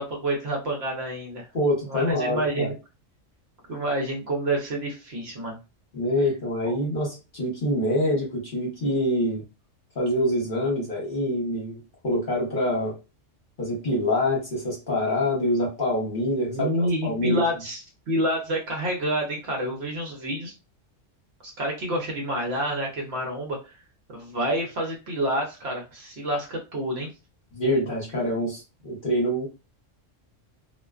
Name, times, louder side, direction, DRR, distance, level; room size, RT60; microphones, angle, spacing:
voice 1, 0.0-1.5 1.9-2.7 3.7-5.6 6.6-6.8 16.5-17.8 18.1-20.5 21.4-23.7 24.1-27.1, right 1 dB, 60° right, 0 dB, 0.9 m, -28 dB
voice 2, 1.5-2.7 5.9-9.4 9.9-12.9 13.6-17.4 27.5-29.5, left 1 dB, 45° left, -3 dB, 1.0 m, -25 dB
2.4 x 2.2 x 2.3 m, 0.29 s
omnidirectional pair, 1.3 m